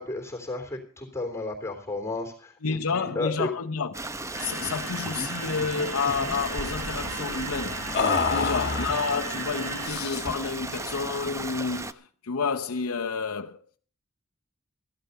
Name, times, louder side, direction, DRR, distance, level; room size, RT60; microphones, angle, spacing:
voice 1, 0.0-3.5 8.2-8.7, left 2 dB, 15° left, 3.3 m, -33 dB
voice 2, 2.6-8.0 8.2-13.8, left 5 dB, 90° left, 0.8 m, -30 dB
Stream, 3.9-11.9, right 2 dB, 15° right, 0.7 m, -35 dB
sound 1, 4.3-9.9, right 2 dB, 80° right, 6.2 m, -37 dB
sound 2, 4.6-4.8 5.0-5.3 5.6-6.4 7.9-9.2 9.8-10.4, left 5 dB, 50° left, 1.5 m, -29 dB
14.5 x 11.5 x 5.5 m
head